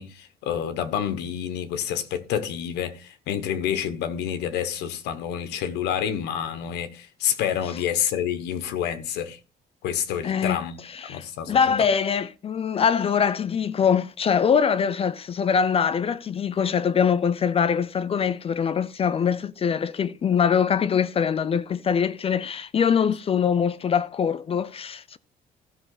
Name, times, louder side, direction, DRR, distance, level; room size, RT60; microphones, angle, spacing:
voice 1, 0.0-9.4 9.8-10.8 11.1-11.6, left 9 dB, 85° left, 1.3 m, -28 dB
voice 2, 10.2-10.6 10.9-25.2, left 7 dB, 35° left, 0.5 m, -23 dB
13.0 x 5.6 x 4.0 m
cardioid pair, 110°, 17 cm